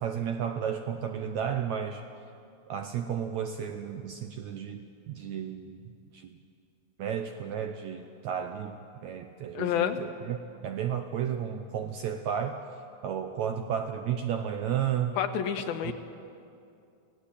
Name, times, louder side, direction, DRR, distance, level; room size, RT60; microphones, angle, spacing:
voice 1, 0.0-2.0 2.7-5.8 6.1-6.4 7.0-12.6 13.0-15.2 15.8-15.9, right 8 dB, 75° right, 6 dB, 1.7 m, -33 dB
voice 2, 9.5-10.0 15.2-15.9, left 10 dB, 80° left, 7 dB, 3.0 m, -28 dB
25.0 x 17.0 x 8.6 m, 2.5 s
omnidirectional pair, 4.2 m